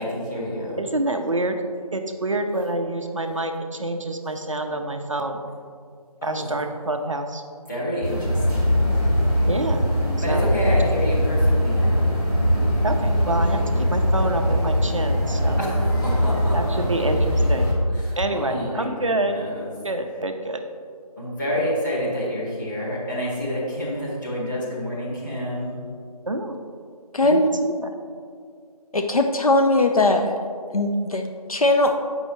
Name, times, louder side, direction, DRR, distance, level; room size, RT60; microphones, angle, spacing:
voice 1, 0.0-0.8 6.2-6.5 7.7-9.0 10.2-12.1 15.6-17.0 18.0-19.7 21.2-25.8, equal, 30° left, -7 dB, 1.7 m, -29 dB
voice 2, 0.8-1.6 1.9-5.5 6.2-7.4 9.4-9.8 10.3-10.8 12.8-15.6 16.5-17.7 18.2-19.4 19.8-20.6 26.3-26.6 27.2-27.9, right 2 dB, 50° right, 5 dB, 0.5 m, -27 dB
sound 1, 8.0-17.7, equal, 5° left, 0.9 m, -21 dB
voice 3, 27.1-27.5 28.9-30.3 30.7-31.9, left 2 dB, 65° left, 4 dB, 0.5 m, -19 dB
8.0 x 5.4 x 3.1 m, 2.2 s
figure-of-eight pair, 165°, 20 cm